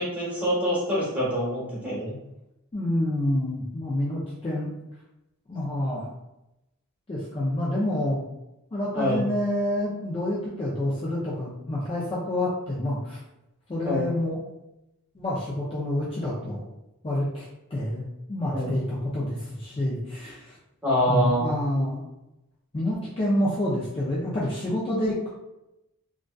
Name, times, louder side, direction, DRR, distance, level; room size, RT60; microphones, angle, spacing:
voice 1, 0.0-2.1 8.9-9.2 13.8-14.0 18.5-18.8 20.8-21.5, equal, 5° right, -8 dB, 0.9 m, -25 dB
voice 2, 2.7-4.7 5.5-6.1 7.1-8.2 8.7-13.2 13.7-14.4 15.1-16.6 17.0-18.0 18.3-20.5 21.1-22.1 22.7-25.4, left 1 dB, 25° left, -7 dB, 0.4 m, -28 dB
2.5 x 2.3 x 2.2 m, 0.91 s
head